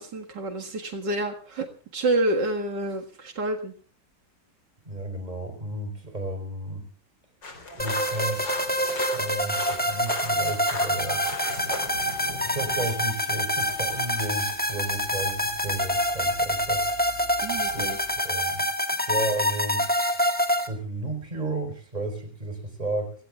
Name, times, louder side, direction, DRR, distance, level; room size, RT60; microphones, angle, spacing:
voice 1, 0.0-1.7 1.9-3.7 17.4-18.0, right 2 dB, 75° right, 3 dB, 2.4 m, -28 dB
voice 2, 4.8-6.9 7.8-8.5 9.0-11.2 12.4-16.9 17.7-17.9 18.2-19.9 20.7-23.1, right 2 dB, 25° right, 7 dB, 4.4 m, -33 dB
sound 1, 7.4-12.9, left 2 dB, 85° left, 4.4 m, -37 dB
sound 2, 7.8-20.7, equal, 5° left, 1.8 m, -26 dB
sound 3, 12.7-18.2, equal, 35° left, 4.3 m, -47 dB
30.0 x 17.5 x 2.3 m, 0.41 s
omnidirectional pair, 1.9 m